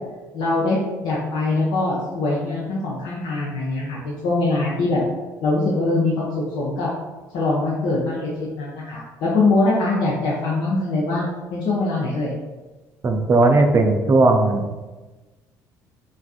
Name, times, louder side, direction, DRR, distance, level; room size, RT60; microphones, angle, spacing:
voice 1, 0.3-5.0 5.4-6.3 6.6-6.9 7.3-8.3 8.6-11.2 11.5-12.3, left 2 dB, 55° left, -5 dB, 0.6 m, -22 dB
voice 2, 13.0-14.6, right 2 dB, 25° right, 5 dB, 0.3 m, -16 dB
3.2 x 2.6 x 2.3 m, 1.2 s
figure-of-eight pair, 50°, 10 cm